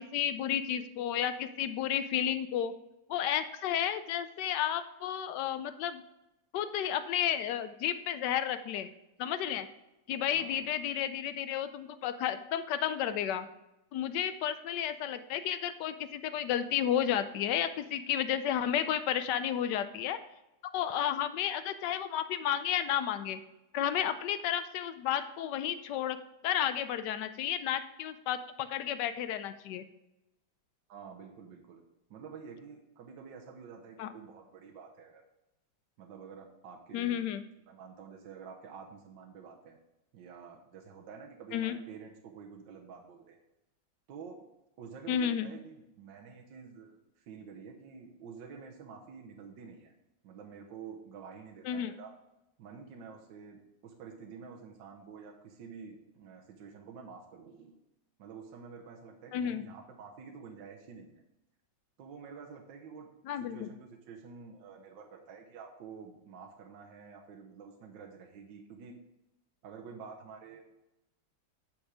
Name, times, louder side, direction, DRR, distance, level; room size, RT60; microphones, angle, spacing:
voice 1, 0.0-2.7 3.1-6.0 6.5-8.9 9.2-9.7 10.1-13.5 13.9-20.2 20.7-23.4 23.7-26.2 26.4-29.8 34.0-34.1 36.9-37.4 41.5-41.7 45.1-45.5 51.7-51.9 59.3-59.6 63.3-63.7, left 10 dB, 75° left, 11 dB, 1.0 m, -32 dB
voice 2, 30.9-31.8 32.1-35.2 36.0-37.3 37.7-39.8 40.1-43.4 44.1-44.4 44.8-49.9 50.2-52.1 52.6-57.8 58.2-61.2 62.0-63.1 63.4-68.9 69.6-70.7, right 6 dB, 65° right, 1 dB, 1.6 m, -49 dB
8.8 x 5.2 x 4.8 m, 0.92 s
omnidirectional pair, 2.2 m